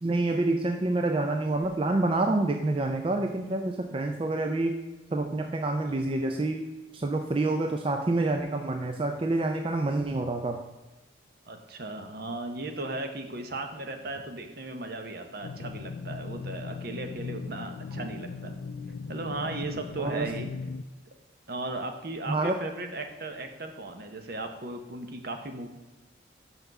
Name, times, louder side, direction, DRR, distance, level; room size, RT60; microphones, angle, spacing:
voice 1, 0.0-4.8 5.1-6.6 6.9-10.6 20.0-20.3 22.3-22.5, right 2 dB, 30° right, 4 dB, 0.4 m, -27 dB
voice 2, 11.5-18.5 19.1-20.5 21.5-25.7, right 2 dB, 55° right, 6 dB, 0.8 m, -36 dB
sound 1, 15.4-20.8, left 4 dB, 75° left, 0.3 m, -38 dB
5.7 x 5.5 x 5.8 m, 1.1 s
head